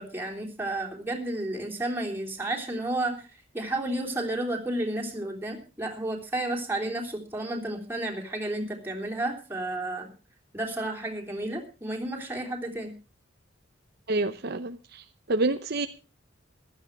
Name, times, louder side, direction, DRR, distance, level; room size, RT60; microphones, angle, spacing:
voice 1, 0.0-3.3 3.5-10.1 10.5-12.9, right 1 dB, 10° right, 0 dB, 3.4 m, -32 dB
voice 2, 14.1-15.9, right 2 dB, 50° right, 8 dB, 0.8 m, -28 dB
15.5 x 12.5 x 4.7 m, 0.34 s
head